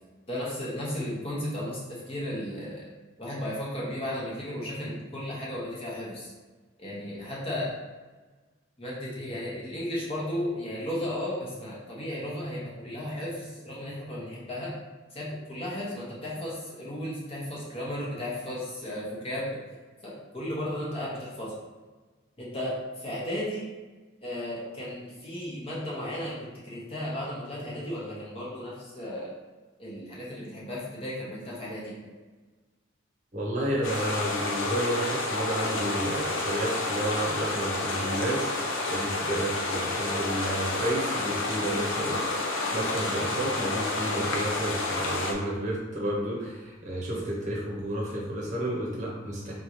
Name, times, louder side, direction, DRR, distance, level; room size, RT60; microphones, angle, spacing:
voice 1, 0.3-2.8 3.2-6.3 6.8-7.7 8.8-14.8 15.1-19.6 20.0-21.6 22.4-23.7 24.2-26.4 26.6-29.3 29.8-32.1, left 1 dB, 30° left, -6 dB, 1.0 m, -34 dB
voice 2, 33.3-49.5, right 1 dB, 40° right, -5 dB, 0.9 m, -31 dB
sound 1, 33.8-45.3, left 2 dB, 80° left, 0.7 m, -30 dB
3.8 x 3.6 x 3.0 m, 1.3 s
head